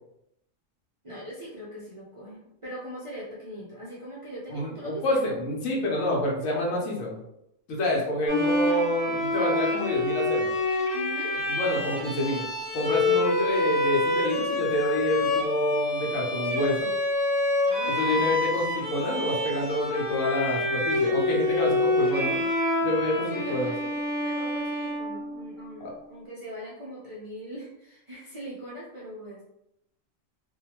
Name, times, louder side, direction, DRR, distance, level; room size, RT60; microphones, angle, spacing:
voice 1, 1.0-5.4 10.9-11.3 17.7-18.4 23.3-23.9 24.2-29.4, equal, 50° right, -7 dB, 0.3 m, -40 dB
voice 2, 4.5-7.2 7.7-10.5 11.5-12.4 12.7-16.9 17.9-22.4 22.8-23.7 25.8-25.9, left 1 dB, 90° left, -2 dB, 1.2 m, -28 dB
Bowed string instrument, 8.3-25.7, left 2 dB, 60° left, 1.1 m, -27 dB
2.7 x 2.2 x 2.9 m, 0.81 s
omnidirectional pair, 1.4 m